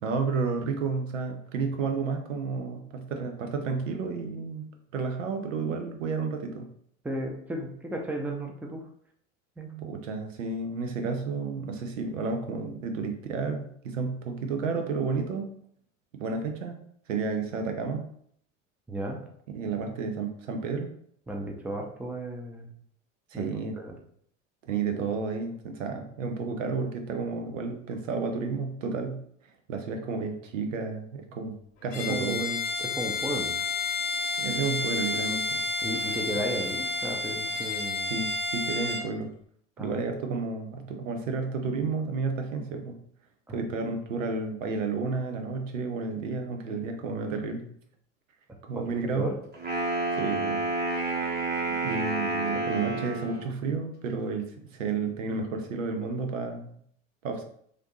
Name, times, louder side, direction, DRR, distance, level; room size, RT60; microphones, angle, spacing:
voice 1, 0.0-4.7 4.9-6.7 9.8-15.5 16.1-16.8 17.1-18.0 19.5-20.9 23.3-23.8 24.6-29.2 29.7-31.6 31.8-32.6 34.4-35.6 38.1-39.3 39.8-43.0 43.5-47.7 48.6-49.3 50.1-50.6 51.8-56.7 57.2-57.4, right 4 dB, 80° right, 4 dB, 0.6 m, -31 dB
voice 2, 7.0-8.9 9.6-10.0 18.9-19.2 21.3-22.7 23.3-23.5 23.8-24.0 31.9-32.4 32.8-33.5 35.8-38.1 39.8-40.0 43.5-43.7 48.7-49.4, right 1 dB, 5° right, 2 dB, 0.5 m, -34 dB
Bowed string instrument, 31.9-39.1, left 3 dB, 80° left, 0.8 m, -30 dB
Wind instrument woodwind instrument, 49.5-53.5, right 2 dB, 25° right, 1.0 m, -29 dB
3.2 x 2.6 x 3.0 m, 0.64 s
hypercardioid pair, 75°, 38 cm